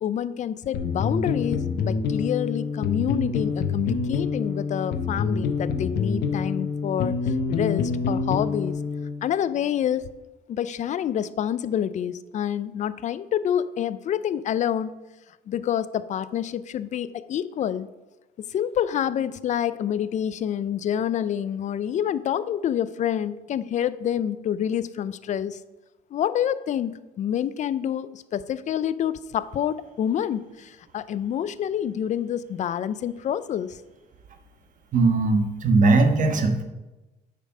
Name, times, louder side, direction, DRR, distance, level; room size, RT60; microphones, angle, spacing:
voice 1, 0.0-8.8 9.2-10.1 10.5-14.9 15.5-17.9 18.4-25.6 26.1-33.8, left 9 dB, 45° left, 15 dB, 0.5 m, -27 dB
sound 1, 0.7-9.2, left 5 dB, 75° left, 0.8 m, -27 dB
voice 2, 34.9-36.6, right 3 dB, 50° right, 6 dB, 1.2 m, -19 dB
8.4 x 5.3 x 5.5 m, 1.1 s
cardioid pair, 110°, 17 cm